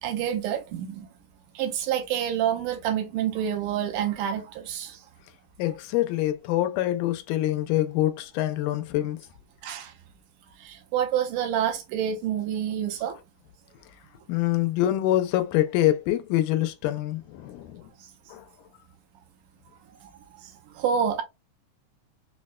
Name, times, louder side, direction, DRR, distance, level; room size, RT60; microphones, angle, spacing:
voice 1, 0.0-1.1 1.6-5.0 9.6-9.9 10.6-13.2 20.4-21.2, right 9 dB, 90° right, 2.2 m, -28 dB
voice 2, 5.6-9.2 14.3-17.9 18.3-18.5, left 14 dB, 90° left, 2.1 m, -25 dB
5.7 x 2.1 x 2.3 m
omnidirectional pair, 3.5 m